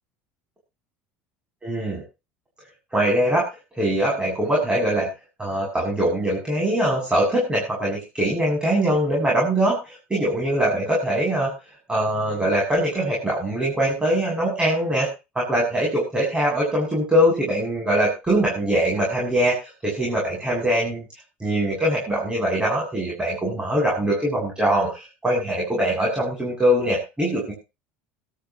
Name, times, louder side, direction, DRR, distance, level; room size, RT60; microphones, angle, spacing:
voice 1, 1.6-2.0 2.9-3.5 3.7-5.1 5.4-11.5 11.9-15.1 15.3-21.1 21.4-27.5, right 1 dB, 15° right, -2 dB, 7.7 m, -22 dB
22.0 x 12.5 x 3.1 m, 0.29 s
hypercardioid pair, 85°, 6 cm